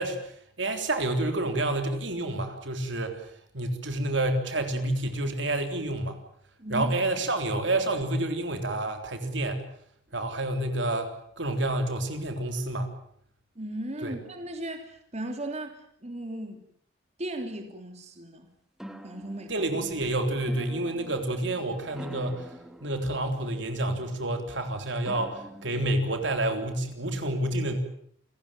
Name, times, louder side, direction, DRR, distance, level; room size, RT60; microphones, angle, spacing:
voice 1, 0.0-6.2 6.7-9.6 10.1-12.9 14.0-14.1 19.5-22.5 22.8-27.8, right 1 dB, 75° right, 6 dB, 3.7 m, -29 dB
voice 2, 6.6-6.9 13.5-16.6 17.2-18.5 19.0-19.5, right 1 dB, 35° right, 5 dB, 3.2 m, -36 dB
sound 1, 18.8-26.3, right 1 dB, ahead, 1.9 m, -46 dB
28.5 x 16.5 x 9.0 m, 0.68 s
head